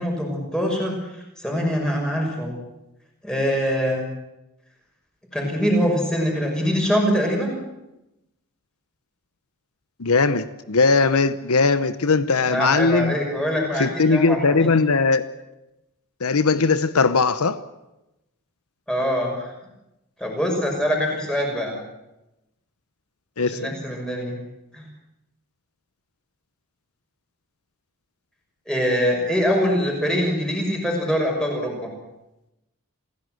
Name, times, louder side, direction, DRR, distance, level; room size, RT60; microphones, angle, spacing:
voice 1, 0.0-2.6 3.2-4.0 5.3-7.6 12.5-14.7 18.9-19.5 20.2-21.7 23.5-24.4 24.7-24.9 28.7-31.9, equal, 5° left, 6.1 m, -23 dB
voice 2, 10.0-13.1 13.8-15.2 16.2-17.6 23.4-23.7, left 4 dB, 80° left, 0.9 m, -19 dB
27.5 x 16.0 x 7.8 m
head